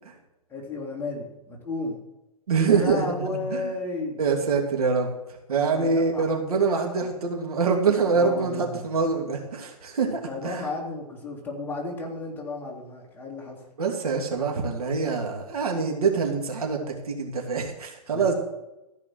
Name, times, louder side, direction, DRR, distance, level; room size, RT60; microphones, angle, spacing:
voice 1, 0.5-2.0 2.7-4.2 5.5-6.3 8.1-8.8 10.3-13.6 18.1-18.3, left 3 dB, 10° left, -2 dB, 2.7 m, -33 dB
voice 2, 2.5-3.7 4.2-5.1 5.5-10.6 13.8-18.3, right 5 dB, 70° right, 2 dB, 2.8 m, -25 dB
14.5 x 5.8 x 7.7 m, 0.95 s
hypercardioid pair, 130°, 20 cm